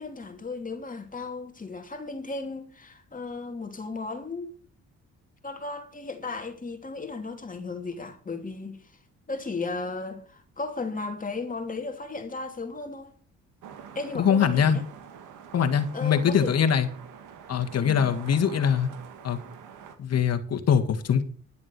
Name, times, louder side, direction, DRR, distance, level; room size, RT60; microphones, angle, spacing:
voice 1, 0.0-4.5 5.4-8.8 9.3-13.1 13.9-14.8 15.9-16.6 17.8-18.1, left 3 dB, 25° left, 2.9 m, -35 dB
sound 1, 13.6-20.0, right 7 dB, 85° right, 2.2 m, -46 dB
voice 2, 14.1-14.8 15.5-16.9 17.5-18.9 19.2-19.4 20.0-21.2, left 7 dB, 55° left, 1.9 m, -23 dB
11.5 x 7.4 x 6.9 m
cardioid pair, 90°, 30 cm